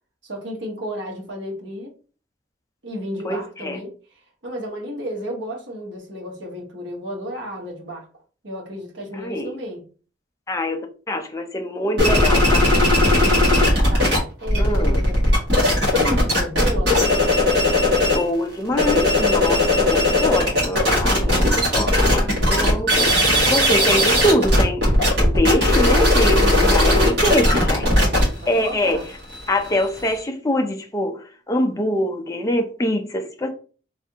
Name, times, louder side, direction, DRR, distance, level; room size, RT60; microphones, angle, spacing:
voice 1, 0.2-1.9 2.8-3.9 4.4-8.1 8.4-9.8 13.1-14.1 14.4-15.2 15.9-17.1 26.4-29.0, equal, 75° right, 1.1 m, -32 dB
voice 2, 3.2-3.8 9.1-9.5 10.5-12.7 13.0-13.2 13.5-13.7 14.6-15.0 18.0-23.1 23.5-24.9 25.2-27.9 28.5-29.0 29.5-33.5, left 1 dB, 15° left, 0.4 m, -24 dB
sound 1, 12.0-14.2 14.4-18.3 18.6-30.2, left 1 dB, 60° right, 1.4 m, -18 dB
3.3 x 2.4 x 2.8 m
head